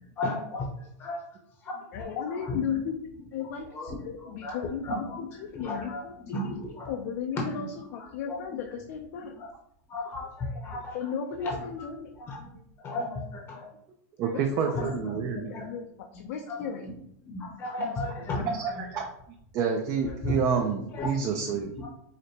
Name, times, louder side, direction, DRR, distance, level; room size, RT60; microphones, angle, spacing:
voice 1, 0.2-1.2 1.6-2.7 3.7-6.9 7.5-7.7 7.9-8.8 9.3-9.5 9.9-11.0 11.4-11.7 12.2-12.4 12.8-13.7 14.7-15.7 16.1-16.6 16.8-17.0 17.3-18.5 20.2-20.3 20.9-21.4 21.8-21.9, left 2 dB, 25° left, -1 dB, 0.7 m, -35 dB
voice 2, 1.9-3.0 3.3-3.9 4.3-4.8 5.2-6.6 6.9-9.3 10.9-12.1 14.3-14.4 15.3-15.9 16.1-16.9 18.4-18.5, left 7 dB, 60° left, 3 dB, 0.5 m, -35 dB
voice 3, 14.2-15.7 18.5-19.1 19.5-21.7, right 6 dB, 35° right, 4 dB, 0.4 m, -28 dB
4.9 x 2.1 x 2.8 m, 0.73 s
supercardioid pair, 140°, 9 cm